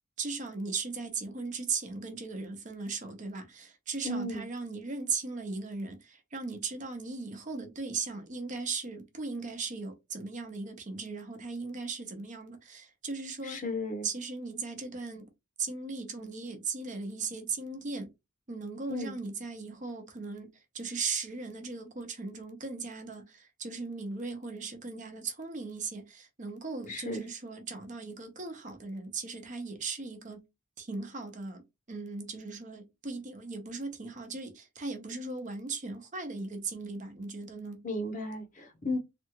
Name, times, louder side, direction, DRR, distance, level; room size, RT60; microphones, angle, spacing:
voice 1, 0.2-13.6 14.0-15.3 15.6-18.1 18.5-30.4 30.8-31.6 31.9-37.8, right 4 dB, 35° right, 0.7 m, -38 dB
voice 2, 4.0-4.5 13.4-14.1 18.9-19.2 26.9-27.2 37.8-39.0, left 2 dB, 40° left, 0.7 m, -34 dB
3.4 x 2.4 x 3.0 m
head